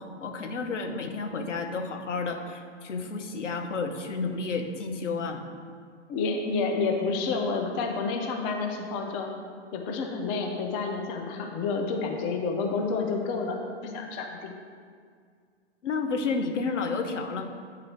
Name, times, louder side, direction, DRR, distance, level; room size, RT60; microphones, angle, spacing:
voice 1, 0.0-5.4 15.8-17.5, left 4 dB, 80° left, 5 dB, 0.8 m, -31 dB
voice 2, 6.1-9.3 9.7-14.5, left 4 dB, 20° left, 2 dB, 0.4 m, -29 dB
8.7 x 3.8 x 4.3 m, 2.1 s
figure-of-eight pair, 115°, 36 cm